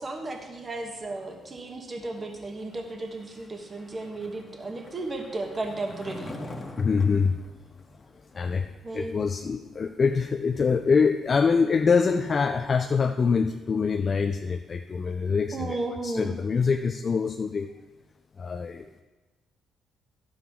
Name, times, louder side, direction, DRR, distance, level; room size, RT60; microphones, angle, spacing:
voice 1, 0.0-6.3 8.8-9.1 15.5-16.4, right 2 dB, 35° right, 3 dB, 1.4 m, -34 dB
Skateboard, 3.1-8.5, left 1 dB, 20° left, 1.4 m, -44 dB
voice 2, 6.8-7.4 8.3-8.7 8.9-15.8 16.0-17.7 18.4-19.0, left 5 dB, 40° left, 6 dB, 0.4 m, -24 dB
11.5 x 7.8 x 3.6 m, 1.2 s
cardioid pair, 90°, 0 cm